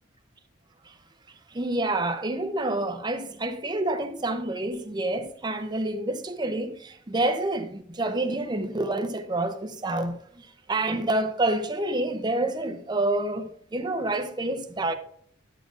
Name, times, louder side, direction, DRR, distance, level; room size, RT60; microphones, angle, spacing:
voice 1, 1.5-10.1 10.7-14.9, right 2 dB, 20° right, 0.6 m, -28 dB
9.8 x 7.3 x 2.5 m
head